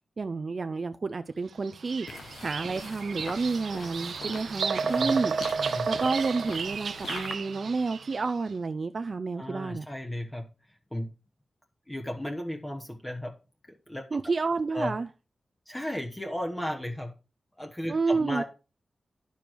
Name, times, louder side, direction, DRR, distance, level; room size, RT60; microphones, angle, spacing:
voice 1, 0.2-2.1 2.4-5.3 5.9-9.9 14.1-15.1 17.9-18.4, right 4 dB, 45° right, 0.5 m, -30 dB
Bird vocalization bird call bird song, 1.6-8.3, right 5 dB, 85° right, 0.6 m, -32 dB
sound 1, 2.1-7.3, left 5 dB, 90° left, 1.1 m, -43 dB
voice 2, 4.9-5.3 5.6-5.9 9.4-10.4 10.9-11.1 11.9-13.3 13.9-14.1 14.7-14.9 15.7-17.1 17.6-18.4, left 1 dB, 15° left, 1.2 m, -34 dB
10.5 x 6.9 x 4.7 m
wide cardioid pair, 130°, 0 cm